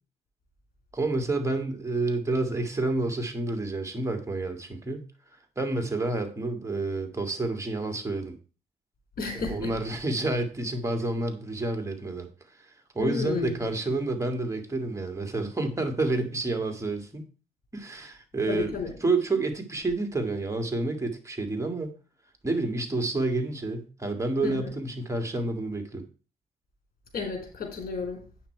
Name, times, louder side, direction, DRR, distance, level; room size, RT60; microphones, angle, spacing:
voice 1, 0.9-5.0 5.6-8.3 9.5-17.2 17.7-18.7 19.0-21.9 22.4-26.1, right 2 dB, 20° right, 5 dB, 2.1 m, -29 dB
voice 2, 9.2-9.7 13.0-13.5 18.5-18.9 24.4-24.7 27.1-28.2, left 5 dB, 60° left, 4 dB, 3.9 m, -32 dB
9.0 x 6.1 x 4.6 m, 0.36 s
cardioid pair, 85°, 16 cm